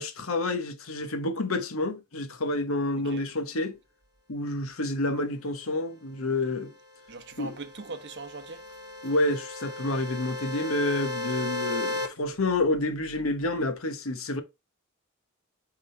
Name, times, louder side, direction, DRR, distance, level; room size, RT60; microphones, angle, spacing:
voice 1, 0.0-3.8 4.3-6.7 7.4-7.5 9.0-14.4, left 2 dB, 80° left, 1.2 m, -29 dB
sound 1, 7.1-12.1, left 2 dB, 20° right, 1.8 m, -35 dB
voice 2, 7.1-9.1, right 3 dB, 60° right, 1.1 m, -42 dB
8.7 x 3.9 x 3.3 m
head